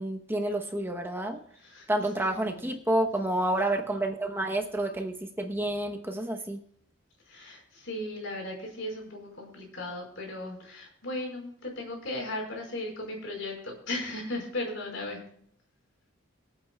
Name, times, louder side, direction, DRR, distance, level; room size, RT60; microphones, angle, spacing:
voice 1, 0.0-1.4 1.9-6.6, right 1 dB, 10° right, 3 dB, 0.9 m, -29 dB
voice 2, 2.2-2.7 7.3-15.2, left 1 dB, 65° left, 0 dB, 5.0 m, -36 dB
24.0 x 8.9 x 2.3 m, 0.66 s
head